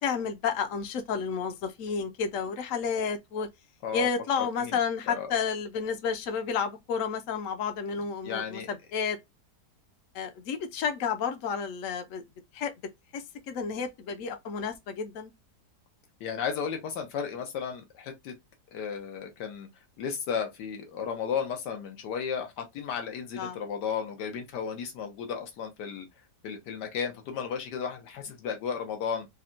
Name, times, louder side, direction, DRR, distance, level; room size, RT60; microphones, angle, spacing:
voice 1, 0.0-3.5 3.9-9.2 10.1-12.2 12.5-12.7 13.1-15.3 23.4-23.6, left 6 dB, 65° left, 0.9 m, -31 dB
voice 2, 4.4-4.8 5.1-5.3 8.2-8.7 16.2-18.3 18.7-19.7 20.0-26.1 26.4-29.3, left 7 dB, 90° left, 1.5 m, -34 dB
4.1 x 2.2 x 2.5 m
omnidirectional pair, 1.8 m